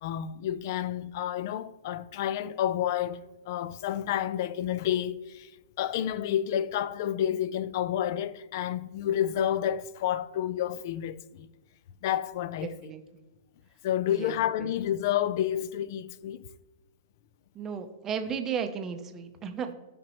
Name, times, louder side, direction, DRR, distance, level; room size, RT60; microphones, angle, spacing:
voice 1, 0.0-5.5 5.8-11.5 12.0-12.7 13.8-16.4, left 10 dB, 45° left, 0.4 m, -30 dB
voice 2, 12.6-13.0 14.1-14.7 17.5-19.7, right 7 dB, 15° right, 0.6 m, -34 dB
14.0 x 5.1 x 3.0 m
hypercardioid pair, 165°, 2 cm